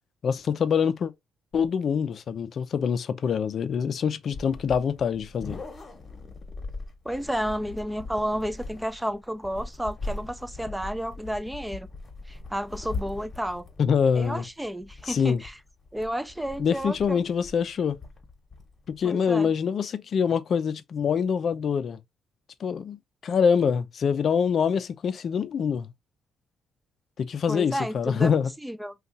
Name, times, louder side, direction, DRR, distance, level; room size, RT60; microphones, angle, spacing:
voice 1, 0.2-1.1 1.5-5.6 13.8-14.4 15.1-15.4 16.6-18.0 18.9-22.0 22.6-25.9 27.2-28.5, left 6 dB, 55° left, 0.4 m, -25 dB
sound 1, 4.3-19.1, left 3 dB, 35° left, 1.0 m, -40 dB
voice 2, 7.0-11.9 12.3-13.7 14.1-15.5 15.9-17.2 19.0-19.5 27.5-28.3 28.6-28.9, equal, 5° right, 0.4 m, -31 dB
2.7 x 2.3 x 3.8 m
cardioid pair, 90°, 0 cm